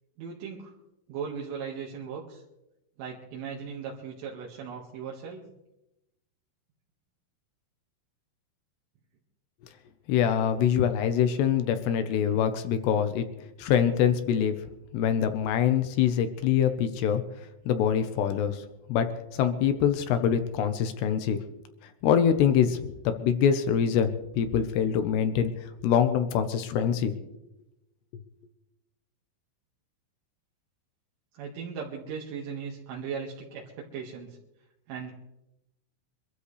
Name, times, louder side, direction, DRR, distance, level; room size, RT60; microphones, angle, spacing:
voice 1, 0.2-0.7 1.1-2.4 3.0-5.5 31.4-34.4 34.9-35.1, right 6 dB, 80° right, -3 dB, 4.3 m, -38 dB
voice 2, 10.1-13.3 13.6-14.6 14.9-17.2 17.7-18.6 18.9-19.1 19.3-21.4 22.0-25.5 25.8-27.1, left 8 dB, 75° left, 8 dB, 2.8 m, -24 dB
25.0 x 13.5 x 3.3 m, 0.91 s
omnidirectional pair, 5.5 m